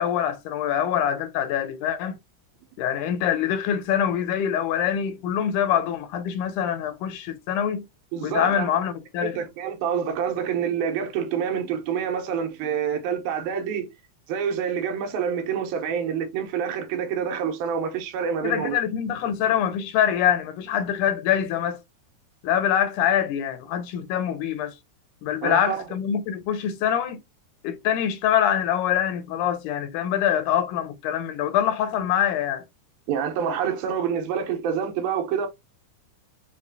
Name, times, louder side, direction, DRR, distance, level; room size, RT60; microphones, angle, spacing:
voice 1, 0.0-2.2 2.8-7.8 8.2-9.4 18.4-21.8 22.4-24.7 25.2-27.2 27.6-32.6, left 9 dB, 85° left, 2.0 m, -24 dB
voice 2, 8.1-8.7 9.2-13.9 14.3-18.8 25.4-25.8 33.1-35.5, right 7 dB, 80° right, 2.1 m, -27 dB
5.5 x 2.4 x 2.6 m
omnidirectional pair, 3.6 m